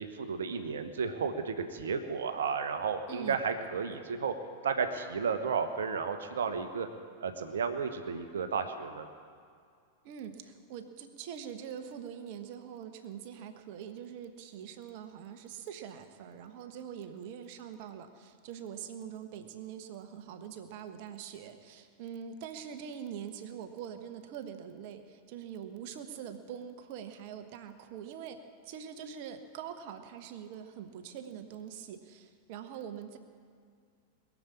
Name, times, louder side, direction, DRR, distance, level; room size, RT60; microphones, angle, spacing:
voice 1, 0.0-4.3 4.6-6.9 7.2-9.1, right 6 dB, 65° right, 8 dB, 1.1 m, -33 dB
voice 2, 3.1-3.4 10.0-33.2, right 8 dB, 45° right, 8 dB, 1.2 m, -44 dB
21.5 x 7.3 x 8.5 m, 2.2 s
figure-of-eight pair, 90°, 0 cm